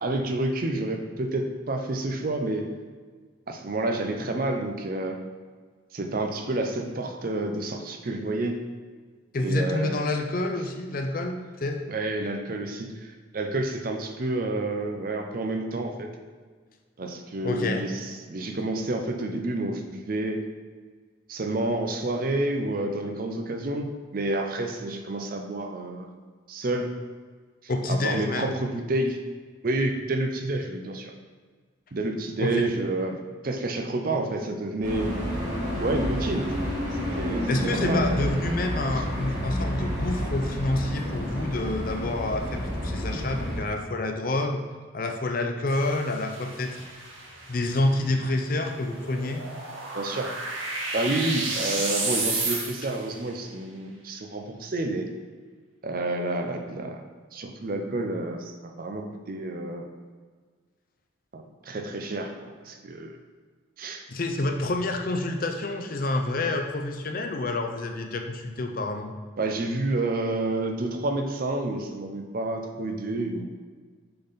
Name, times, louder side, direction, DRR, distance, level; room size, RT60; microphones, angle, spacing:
voice 1, 0.0-2.7 3.5-5.2 5.9-8.6 9.4-10.0 11.9-16.1 17.0-20.4 21.3-26.1 26.5-26.9 27.9-29.2 29.6-31.1 31.9-35.1 35.8-36.5 36.9-38.0 38.9-39.0 49.9-50.3 50.9-55.1 55.8-57.0 57.3-59.9 61.3-63.2 63.8-64.0 69.4-73.4, right 2 dB, 45° right, 4 dB, 0.5 m, -29 dB
voice 2, 9.3-11.8 17.4-17.8 27.7-28.5 32.4-32.7 37.5-44.6 44.9-46.9 47.5-49.4 52.5-52.7 64.1-69.1, left 2 dB, 45° left, 4 dB, 0.5 m, -28 dB
sound 1, 34.8-43.6, equal, 25° right, 1.8 m, -29 dB
sound 2, 45.7-53.1, right 3 dB, 75° right, 1.2 m, -32 dB
6.7 x 3.9 x 4.0 m, 1.5 s
head